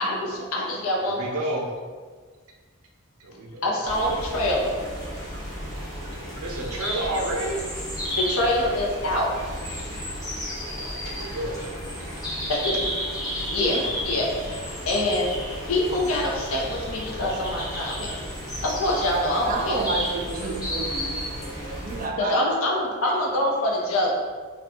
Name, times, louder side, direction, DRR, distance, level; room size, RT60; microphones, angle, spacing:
voice 1, 0.0-1.4 3.6-4.8 8.2-9.3 12.5-12.9 13.5-15.4 15.7-18.1 18.6-19.8 22.2-24.1, left 1 dB, 80° left, -1 dB, 0.6 m, -25 dB
voice 2, 1.0-1.7 3.2-3.7 6.4-7.6 10.7-11.7 12.1-12.3, right 1 dB, 85° right, 0 dB, 0.5 m, -31 dB
sound 1, 3.8-22.1, equal, 20° left, 0.6 m, -32 dB
voice 3, 19.5-22.5, right 3 dB, 40° right, 1 dB, 0.3 m, -30 dB
2.5 x 2.3 x 3.5 m, 1.5 s
head